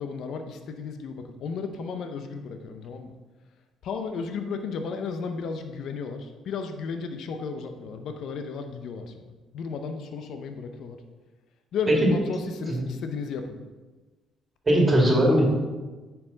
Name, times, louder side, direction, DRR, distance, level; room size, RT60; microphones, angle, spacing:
voice 1, 0.0-3.1 3.8-11.0 11.7-13.6, left 5 dB, 70° left, 6 dB, 0.6 m, -34 dB
voice 2, 14.7-15.5, right 1 dB, 30° right, -1 dB, 2.0 m, -19 dB
9.3 x 4.7 x 3.9 m, 1.3 s
supercardioid pair, 75°, 0 cm